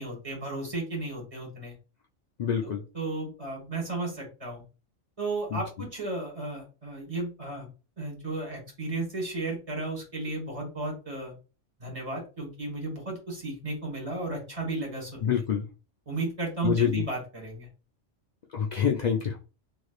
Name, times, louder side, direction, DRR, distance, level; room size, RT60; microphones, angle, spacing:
voice 1, 0.0-1.7 2.6-4.6 5.2-7.7 8.0-11.3 11.8-15.2 16.0-17.7, right 2 dB, 30° right, 1.5 m, -34 dB
voice 2, 2.4-2.8 15.2-15.6 16.6-17.0 18.5-19.4, left 7 dB, 90° left, 0.3 m, -26 dB
3.2 x 3.0 x 2.3 m
omnidirectional pair, 1.3 m